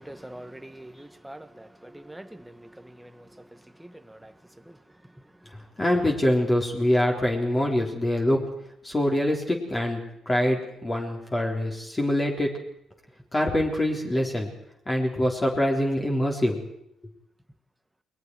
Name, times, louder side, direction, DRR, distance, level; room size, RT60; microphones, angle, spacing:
voice 1, 0.0-3.3 3.8-4.3 4.7-4.8, right 1 dB, 5° right, 8 dB, 1.6 m, -44 dB
voice 2, 5.8-8.4 8.8-12.5 13.3-14.5 14.9-16.7, left 1 dB, 20° left, 0 dB, 3.8 m, -24 dB
29.5 x 21.0 x 4.7 m, 0.77 s
cardioid pair, 90°, 0 cm